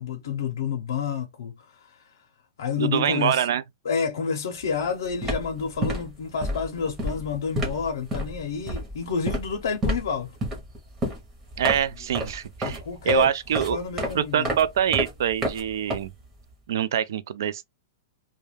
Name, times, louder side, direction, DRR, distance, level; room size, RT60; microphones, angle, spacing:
voice 1, 0.0-2.2 2.6-3.5 3.8-10.3 11.6-11.7 12.6-13.3 13.7-14.6, left 6 dB, 80° left, 0.6 m, -29 dB
voice 2, 2.8-3.6 11.6-13.8 14.1-16.1 16.7-17.7, right 9 dB, 60° right, 0.3 m, -25 dB
sound 1, 4.6-4.8 5.1-16.5, right 1 dB, 15° right, 0.8 m, -31 dB
2.3 x 2.2 x 3.1 m
supercardioid pair, 175°, 2 cm